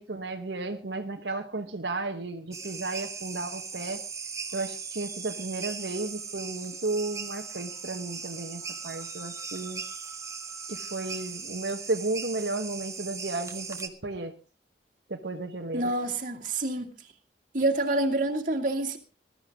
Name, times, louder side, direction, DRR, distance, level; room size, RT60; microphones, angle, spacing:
voice 1, 0.0-4.0 4.5-9.8 10.7-14.3 15.1-15.9, right 2 dB, 80° right, 1.4 m, -33 dB
sound 1, 2.5-13.9, right 5 dB, 20° right, 1.5 m, -38 dB
voice 2, 15.7-16.9 17.5-19.0, right 2 dB, 50° right, 2.5 m, -27 dB
20.5 x 13.0 x 3.7 m
head